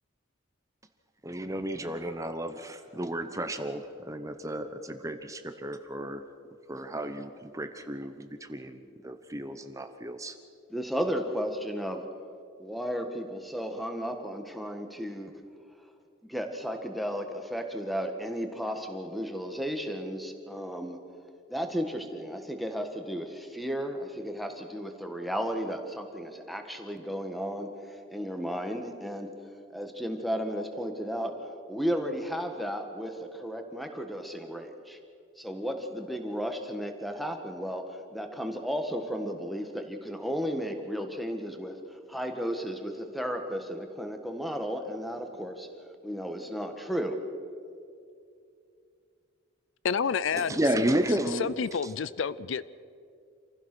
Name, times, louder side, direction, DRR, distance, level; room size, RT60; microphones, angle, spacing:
voice 1, 1.2-6.2 6.7-10.3 50.4-51.5, right 1 dB, 15° right, 8 dB, 0.9 m, -32 dB
voice 2, 10.7-12.0 12.6-15.3 16.2-21.0 21.5-27.7 28.1-29.3 29.7-31.3 31.7-35.0 35.4-45.7 46.0-47.2, equal, ahead, 5 dB, 1.6 m, -34 dB
voice 3, 49.8-50.8 51.3-52.6, left 6 dB, 70° left, 17 dB, 0.4 m, -29 dB
27.5 x 15.5 x 6.2 m, 2.4 s
head